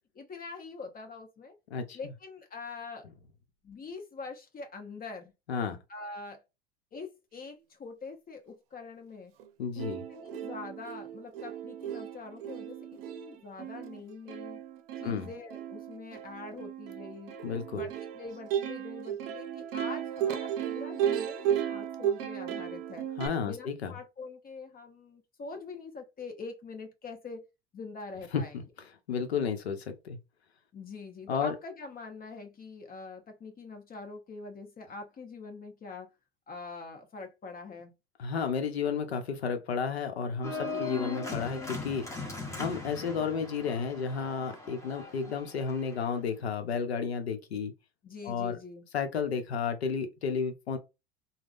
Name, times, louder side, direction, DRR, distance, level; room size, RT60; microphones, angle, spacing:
voice 1, 0.1-1.5 1.9-3.1 3.6-5.3 5.9-6.4 6.9-9.3 10.1-14.6 15.0-17.4 17.7-23.1 23.4-27.5 27.7-28.6 30.7-36.1 36.5-37.9 40.6-40.9 43.1-43.2 48.0-48.9, left 4 dB, 30° left, 0.9 m, -44 dB
Plucked string instrument, 9.4-9.5 9.8-23.3, right 10 dB, 70° right, 0.6 m, -35 dB
voice 2, 9.6-10.0 15.0-15.3 17.4-17.8 23.2-23.9 28.3-28.6 29.1-30.2 31.3-31.5 38.2-42.0 42.6-47.7 48.2-48.6 48.9-50.8, left 6 dB, 90° left, 0.8 m, -32 dB
Organ, 40.4-46.1, left 3 dB, 10° left, 1.1 m, -39 dB
3.5 x 2.2 x 2.5 m
hypercardioid pair, 85°, 31 cm